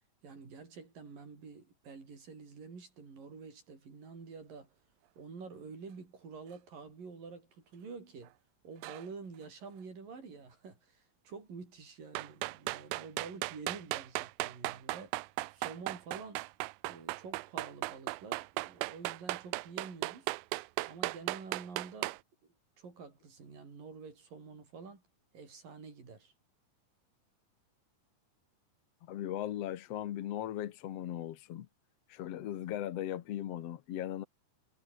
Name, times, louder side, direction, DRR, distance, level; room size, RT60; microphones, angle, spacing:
voice 1, 0.2-4.7 5.2-8.3 8.6-15.2 15.5-16.5 16.9-20.3 20.9-25.0 25.3-26.3, right 5 dB, 70° right, 7.9 m, -48 dB
sound 1, 8.8-9.1 12.1-22.2, right 21 dB, 85° right, 2.4 m, -37 dB
voice 2, 29.0-31.7 32.1-34.2, left 12 dB, 65° left, 1.7 m, -38 dB
omnidirectional pair, 4.1 m